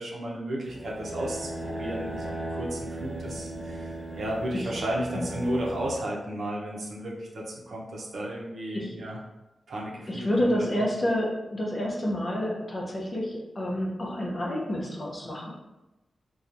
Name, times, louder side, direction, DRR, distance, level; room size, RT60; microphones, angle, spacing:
voice 1, 0.0-9.2 9.7-10.9, right 1 dB, 75° right, -3 dB, 0.6 m, -33 dB
sound 1, 0.7-6.0, right 1 dB, 25° right, 0.6 m, -37 dB
voice 2, 10.1-15.5, equal, 35° left, -3 dB, 0.7 m, -29 dB
2.9 x 2.3 x 2.5 m, 1.0 s
wide cardioid pair, 90°, 0 cm